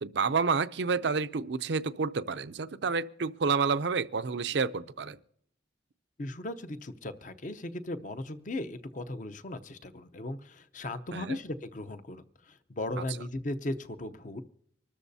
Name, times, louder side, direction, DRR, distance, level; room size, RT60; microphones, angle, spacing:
voice 1, 0.0-5.2 11.1-11.4 13.0-13.1, right 5 dB, 65° right, 0.5 m, -29 dB
voice 2, 6.2-14.4, left 1 dB, 40° left, 0.7 m, -37 dB
25.0 x 13.0 x 2.7 m
head